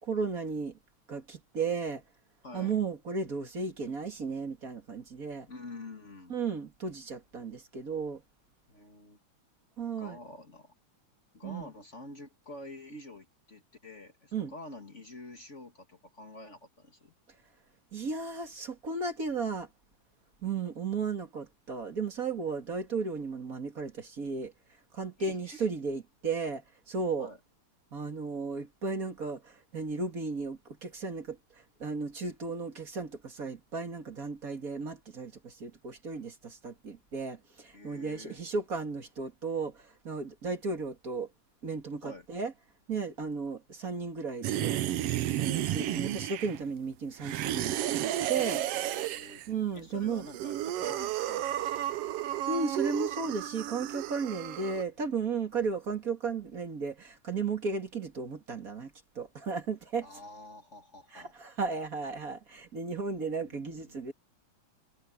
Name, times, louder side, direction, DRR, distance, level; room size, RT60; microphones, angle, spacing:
voice 1, 0.0-0.8 1.1-2.0 2.5-5.5 6.3-8.2 9.8-10.2 11.4-11.7 14.3-14.5 17.9-19.7 20.4-24.5 24.9-27.3 27.9-41.3 41.6-42.5 42.9-44.8 45.3-48.6 49.5-50.3 52.5-60.1 61.1-64.1, right 4 dB, 30° right, 2.2 m, -35 dB
voice 2, 2.4-2.8 5.5-6.4 8.7-9.2 10.0-10.7 11.3-17.1 25.2-25.6 27.2-27.4 37.7-38.4 42.0-42.2 48.7-49.5 49.7-51.7 60.0-61.3 63.4-64.0, left 1 dB, 30° left, 1.7 m, -47 dB
sound 1, 44.4-46.7 47.2-49.5 50.1-54.8, right 13 dB, 70° right, 1.5 m, -32 dB
omnidirectional pair, 3.5 m